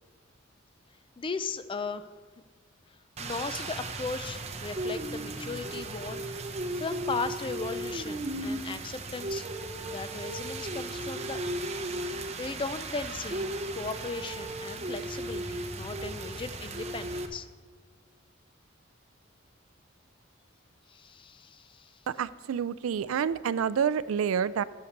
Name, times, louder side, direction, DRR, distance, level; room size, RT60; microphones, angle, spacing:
voice 1, 1.2-2.1 3.2-6.2 6.8-9.5 9.8-11.4 12.4-13.5 13.7-17.5 20.9-21.9, left 4 dB, 25° left, 12 dB, 0.4 m, -37 dB
Rain, 3.2-17.3, right 2 dB, 30° right, 0.7 m, -36 dB
voice 2, 22.1-24.6, right 7 dB, 90° right, 17 dB, 0.4 m, -28 dB
8.4 x 6.6 x 6.5 m, 1.5 s
head